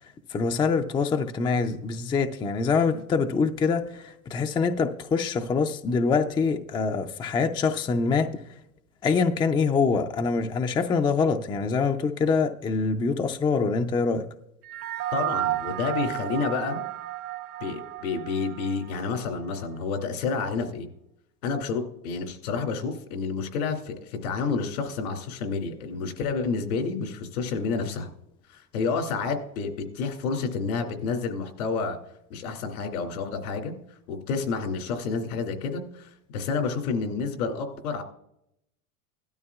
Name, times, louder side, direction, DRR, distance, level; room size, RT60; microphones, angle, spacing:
voice 1, 0.3-8.3 9.0-14.3, left 5 dB, 10° left, 6 dB, 0.4 m, -25 dB
sound 1, 14.6-19.3, right 14 dB, 80° right, 1.0 m, -32 dB
voice 2, 15.1-16.8 17.6-20.9 21.4-28.1 28.5-29.7 29.9-32.0 32.3-33.7 34.1-38.0, left 4 dB, 80° left, 4 dB, 2.6 m, -29 dB
16.5 x 12.5 x 2.3 m, 0.79 s
supercardioid pair, 115°, 43 cm